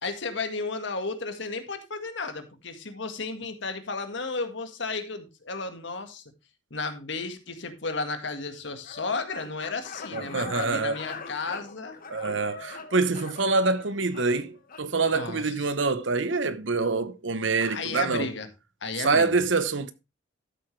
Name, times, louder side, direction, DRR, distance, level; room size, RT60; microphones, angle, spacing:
voice 1, 0.0-6.2 6.7-12.0 15.0-15.5 17.6-18.5 18.8-19.4, left 3 dB, 70° left, 1.7 m, -33 dB
sound 1, 8.8-14.9, left 4 dB, 50° left, 1.4 m, -43 dB
voice 2, 10.1-11.0 12.1-18.3 19.0-19.9, right 3 dB, 70° right, 1.0 m, -26 dB
12.5 x 7.8 x 3.3 m
head